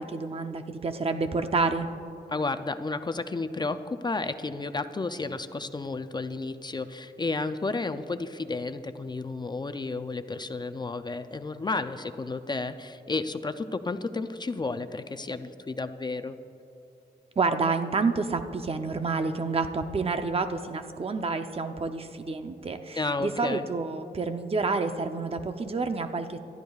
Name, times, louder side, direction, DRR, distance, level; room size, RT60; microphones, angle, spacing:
voice 1, 0.0-1.9 17.4-26.4, right 4 dB, 35° right, 7 dB, 0.6 m, -29 dB
voice 2, 2.3-16.4 23.0-23.7, left 3 dB, 25° left, 10 dB, 0.4 m, -32 dB
24.0 x 13.5 x 2.4 m, 2.9 s
wide cardioid pair, 155°, 18 cm